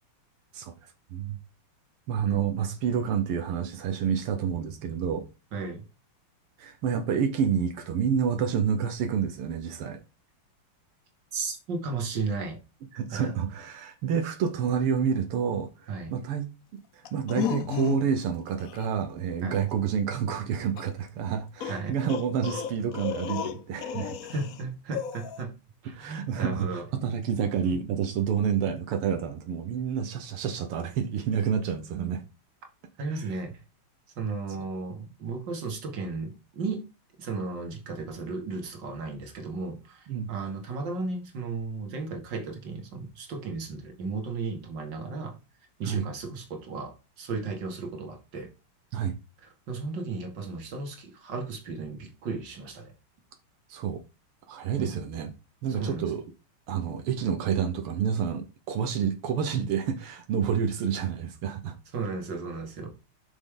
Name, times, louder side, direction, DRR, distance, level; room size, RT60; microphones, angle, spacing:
voice 1, 2.1-5.3 6.6-10.0 12.9-16.5 16.9-24.2 25.9-32.2 40.1-40.3 45.8-46.1 48.9-49.1 53.7-54.0 54.5-55.3 55.6-56.2 56.7-61.8, right 7 dB, 85° right, 2.0 m, -29 dB
voice 2, 5.5-5.8 11.3-12.6 13.1-13.4 15.9-16.1 19.4-19.6 21.7-22.0 24.3-25.5 25.8-26.9 33.0-33.5 34.2-36.9 37.2-45.4 45.8-48.5 49.4-52.9 54.8-55.0 55.7-56.1 61.9-62.9, right 4 dB, 55° right, 2.6 m, -34 dB
sound 1, 17.0-18.2 18.6-18.8 20.8-20.9 21.6-24.6 24.9-25.4, left 8 dB, 80° left, 0.7 m, -33 dB
8.5 x 6.4 x 3.9 m
omnidirectional pair, 2.4 m